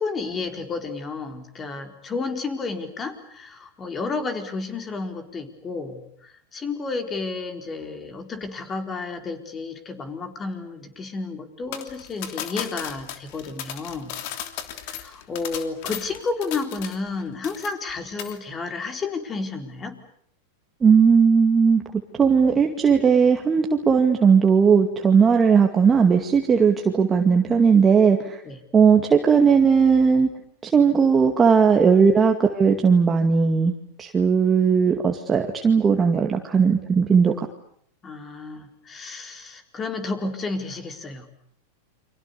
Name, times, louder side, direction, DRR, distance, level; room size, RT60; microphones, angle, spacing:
voice 1, 0.0-14.2 14.8-20.0 28.4-28.6 38.0-41.3, left 4 dB, 25° left, 6 dB, 4.4 m, -31 dB
sound 1, 11.7-17.2 17.4-17.9 18.2-18.4, left 11 dB, 60° left, 3.0 m, -35 dB
voice 2, 20.8-21.8 22.2-28.4 28.7-30.3 30.6-33.7 34.0-37.5, right 6 dB, 20° right, 3 dB, 2.1 m, -17 dB
29.5 x 25.0 x 6.9 m, 0.66 s
hypercardioid pair, 125°, 0 cm